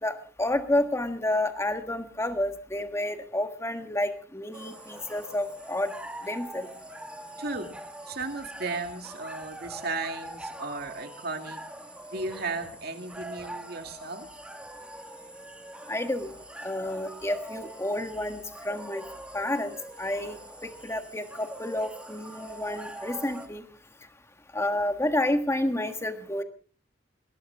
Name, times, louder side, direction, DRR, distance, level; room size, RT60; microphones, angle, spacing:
voice 1, 0.0-5.9 6.2-6.7 15.9-16.3 16.6-19.0 19.3-20.4 20.8-23.6 24.5-26.4, left 1 dB, 15° left, 7 dB, 1.5 m, -30 dB
sound 1, 4.5-23.5, right 1 dB, 5° right, 1.5 m, -43 dB
voice 2, 7.4-7.7 8.1-11.6 12.1-14.3, right 3 dB, 60° right, 6 dB, 2.2 m, -35 dB
21.0 x 17.5 x 3.5 m, 0.40 s
head